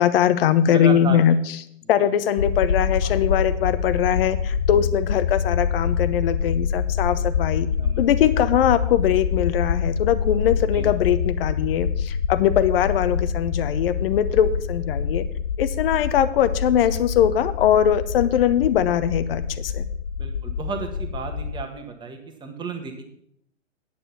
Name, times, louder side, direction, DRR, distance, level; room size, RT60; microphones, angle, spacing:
voice 1, 0.0-1.4 1.9-7.7 8.0-15.2 15.6-19.8, left 10 dB, 50° left, 13 dB, 1.0 m, -21 dB
voice 2, 0.6-1.2 3.0-3.1 7.8-8.0 10.6-10.8 20.2-23.1, right 5 dB, 10° right, 5 dB, 1.5 m, -33 dB
sound 1, 2.4-21.6, left 6 dB, 90° left, 0.7 m, -26 dB
9.3 x 8.8 x 5.7 m, 0.71 s
hypercardioid pair, 130°, 38 cm